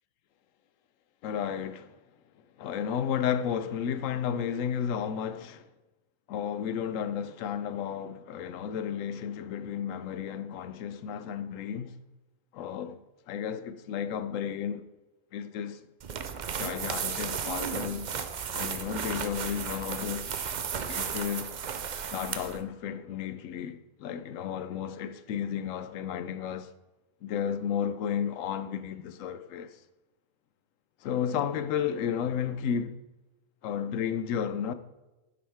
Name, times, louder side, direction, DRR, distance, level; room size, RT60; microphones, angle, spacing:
voice 1, 1.2-2.0 2.6-5.7 6.3-12.0 12.5-13.0 13.3-14.9 15.3-15.8 16.6-18.1 18.5-20.4 20.9-21.6 22.1-26.7 27.2-29.8 31.0-33.0 33.6-34.7, left 8 dB, 75° left, 1.0 m, -33 dB
sound 1, 16.0-22.6, right 7 dB, 50° right, 0.5 m, -34 dB
10.0 x 7.7 x 3.5 m
omnidirectional pair, 1.4 m